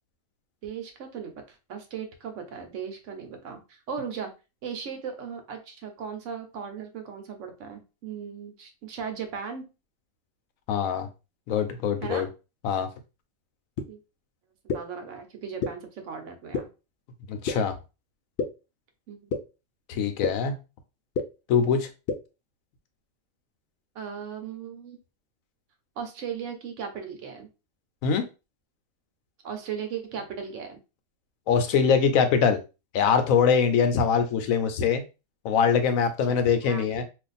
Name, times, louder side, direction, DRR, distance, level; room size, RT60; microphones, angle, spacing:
voice 1, 0.6-4.3 4.6-9.7 12.0-12.3 13.9-14.0 14.6-16.7 19.1-19.3 23.9-25.0 26.0-27.5 29.4-30.8 36.3-36.4 36.6-37.0, right 7 dB, 70° right, 6 dB, 1.0 m, -37 dB
voice 2, 10.7-11.1 11.5-12.3 12.6-12.9 17.3-17.7 19.9-20.6 21.5-21.9 28.0-28.2 31.5-32.6 32.9-35.0 35.4-37.0, left 6 dB, 90° left, 8 dB, 1.0 m, -23 dB
sound 1, 13.8-13.9 14.7-14.8 15.6-15.7 16.5-16.6 17.5-17.6 18.4-18.5 19.3-19.4 20.2-20.3 21.1-21.2 22.1-22.2, left 4 dB, 60° left, 0.6 m, -26 dB
2.5 x 2.4 x 4.0 m, 0.29 s
omnidirectional pair, 1.4 m